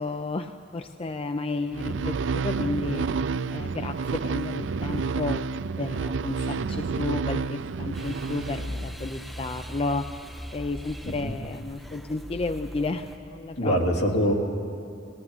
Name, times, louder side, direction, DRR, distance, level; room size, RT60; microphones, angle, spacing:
voice 1, 0.0-5.4 5.8-10.1 10.5-13.8, left 3 dB, 30° left, 7 dB, 0.5 m, -32 dB
sound 1, 1.7-9.2, right 4 dB, 75° right, 0.4 m, -30 dB
sound 2, 7.9-13.2, left 1 dB, ahead, 0.9 m, -39 dB
voice 2, 13.6-14.3, equal, 65° left, 0 dB, 2.8 m, -24 dB
21.0 x 17.0 x 9.7 m, 2.5 s
head